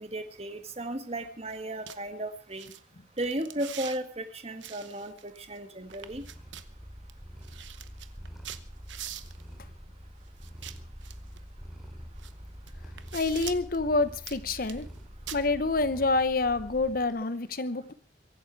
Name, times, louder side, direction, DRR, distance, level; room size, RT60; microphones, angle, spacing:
voice 1, 0.0-2.7 3.2-6.2, right 1 dB, 35° right, 8 dB, 1.5 m, -35 dB
sound 1, 1.5-1.6 1.9-2.0 2.5-2.8 3.2-4.0 4.6-5.6 5.9-6.7 7.1-7.2 7.4-9.4 10.4-11.4 12.2-12.3 12.7-13.8 14.2-15.0 15.3-15.4, right 11 dB, 80° right, 1.0 m, -43 dB
Purr, 5.9-17.2, equal, ahead, 2.9 m, -46 dB
voice 2, 13.1-14.9 15.3-17.9, left 3 dB, 50° left, 14 dB, 0.9 m, -27 dB
23.0 x 11.5 x 4.6 m, 0.42 s
head